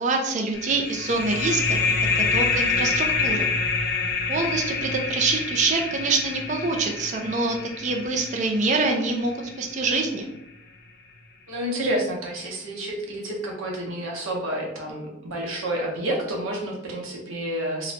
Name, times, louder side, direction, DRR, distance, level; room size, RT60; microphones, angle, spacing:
voice 1, 0.0-1.8 2.1-3.5 4.3-10.3, right 3 dB, 35° right, 2 dB, 0.3 m, -25 dB
sound 1, 0.5-9.8, left 4 dB, 50° left, 0.4 m, -27 dB
voice 2, 11.5-17.9, right 1 dB, 70° right, -1 dB, 0.7 m, -29 dB
2.8 x 2.1 x 2.6 m, 0.83 s
head